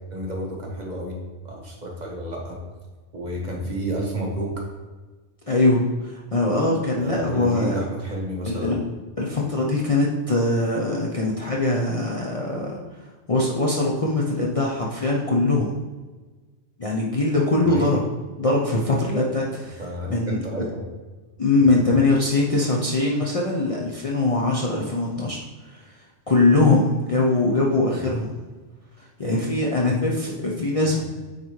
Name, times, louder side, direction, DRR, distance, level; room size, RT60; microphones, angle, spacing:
voice 1, 0.1-1.2 1.4-2.6 3.1-4.6 6.9-8.7 17.6-18.0 19.8-20.8 21.6-21.9 27.9-28.1 30.8-31.0, right 1 dB, 40° right, -2 dB, 1.1 m, -31 dB
voice 2, 5.5-7.8 8.5-8.8 9.2-12.8 13.3-15.7 16.8-18.0 18.4-19.8 20.1-20.4 21.4-25.4 25.7-25.8 26.3-28.3 29.2-31.0, left 2 dB, 35° left, -3 dB, 0.6 m, -22 dB
9.1 x 4.0 x 3.1 m, 1.3 s
omnidirectional pair, 1.2 m